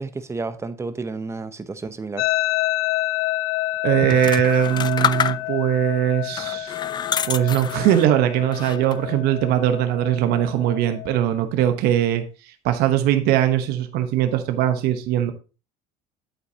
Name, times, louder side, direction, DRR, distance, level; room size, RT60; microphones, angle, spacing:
voice 1, 0.0-2.3, right 3 dB, 15° right, 0.8 m, -31 dB
sound 1, 2.2-11.2, left 17 dB, 75° left, 0.6 m, -28 dB
voice 2, 3.8-6.8 7.2-12.2 12.6-15.3, right 11 dB, 65° right, 1.0 m, -20 dB
sound 2, 4.0-5.8 6.3-8.1 8.5-9.1, left 8 dB, 25° left, 0.4 m, -27 dB
8.4 x 8.0 x 2.8 m
supercardioid pair, 110°, 17 cm